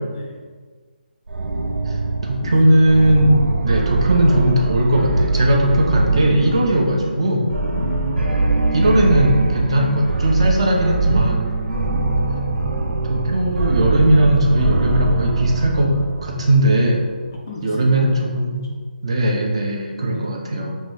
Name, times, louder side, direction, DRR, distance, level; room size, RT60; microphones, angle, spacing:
sound 1, 1.3-17.0, right 3 dB, 85° right, 0.5 m, -22 dB
voice 1, 2.2-3.4 3.6-7.5 7.7-7.9 8.7-11.4 12.5-12.6 13.1-15.9 16.2-17.0 17.6-18.6 19.0-20.8, right 1 dB, 35° right, 0 dB, 0.6 m, -18 dB
voice 2, 7.7-8.3 11.6-12.3 17.5-18.4 20.1-20.4, left 1 dB, 20° left, -1 dB, 0.3 m, -33 dB
5.9 x 2.7 x 3.0 m, 1.5 s
hypercardioid pair, 175°, 5 cm